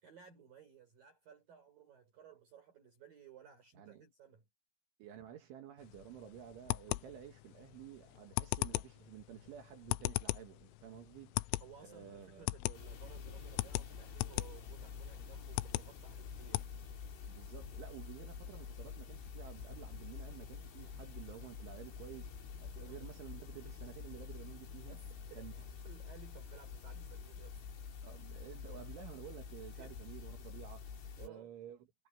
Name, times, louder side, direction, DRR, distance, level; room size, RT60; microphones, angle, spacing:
voice 1, 0.0-4.4 11.6-16.7 22.8-23.0 24.9-25.5 25.8-27.6 29.7-30.0 31.2-31.5, right 8 dB, 45° right, 6.4 m, -58 dB
voice 2, 5.0-12.5 17.2-25.0 25.3-25.5 28.0-30.9 31.2-31.8, right 10 dB, 70° right, 4.1 m, -52 dB
sound 1, 5.8-16.7, left 21 dB, 85° left, 2.9 m, -40 dB
sound 2, 12.7-31.3, left 6 dB, 70° left, 6.8 m, -48 dB
omnidirectional pair, 6.0 m